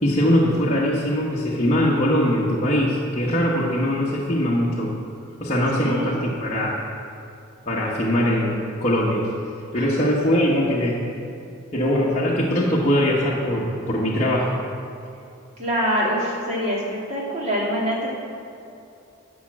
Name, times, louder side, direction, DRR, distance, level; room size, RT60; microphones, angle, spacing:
voice 1, 0.0-4.9 5.4-6.8 7.7-9.3 9.7-11.0 11.7-14.6, equal, 30° left, -6 dB, 1.1 m, -21 dB
voice 2, 5.8-6.1 9.7-9.9 15.6-18.1, equal, 30° right, -5 dB, 2.5 m, -25 dB
11.0 x 6.3 x 7.3 m, 2.8 s
head